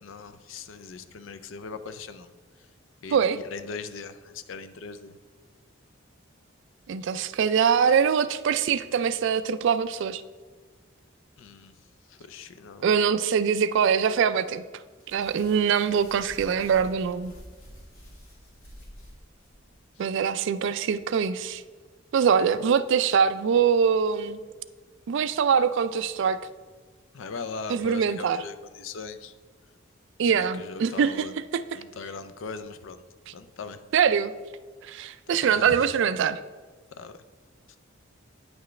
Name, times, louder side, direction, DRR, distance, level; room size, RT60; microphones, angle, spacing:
voice 1, 0.0-2.3 3.0-5.2 11.4-11.8 12.1-12.9 20.0-20.1 27.1-29.3 30.2-31.4 31.7-33.0 33.3-33.8 35.3-35.8 36.9-37.2, left 4 dB, 65° left, 12 dB, 0.5 m, -40 dB
voice 2, 6.9-10.2 12.8-14.6 15.1-17.3 20.0-21.6 22.1-24.4 25.1-26.4 27.7-28.4 30.2-31.3 31.5-31.6 33.9-34.3 34.9-36.4, right 7 dB, 60° right, 14 dB, 0.3 m, -23 dB
sound 1, 15.0-19.7, equal, 85° left, 2.4 m, -48 dB
9.4 x 6.0 x 3.2 m, 1.4 s
head